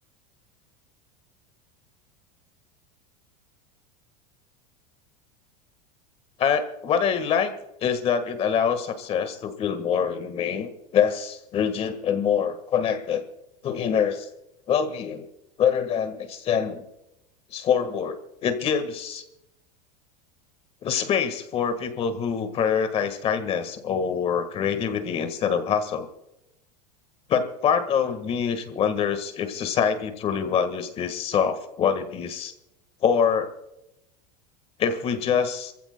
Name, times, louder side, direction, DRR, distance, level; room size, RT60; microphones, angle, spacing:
voice 1, 6.4-7.5 7.8-13.2 13.6-14.3 14.7-15.3 15.6-16.8 17.5-19.2 20.8-26.1 27.3-32.5 33.0-33.5 34.8-35.7, left 7 dB, 30° left, 9 dB, 1.6 m, -25 dB
28.0 x 15.5 x 2.2 m, 0.86 s
supercardioid pair, 160°, 21 cm